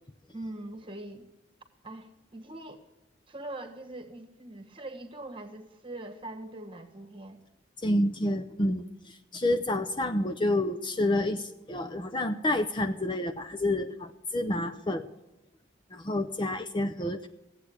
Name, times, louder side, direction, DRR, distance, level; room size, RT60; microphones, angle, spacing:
voice 1, 0.3-1.3 1.8-2.8 3.3-7.4, right 1 dB, 25° right, 6 dB, 1.4 m, -42 dB
voice 2, 7.8-15.1 15.9-17.3, left 1 dB, 25° left, 7 dB, 0.5 m, -29 dB
16.5 x 8.2 x 10.0 m, 0.98 s
head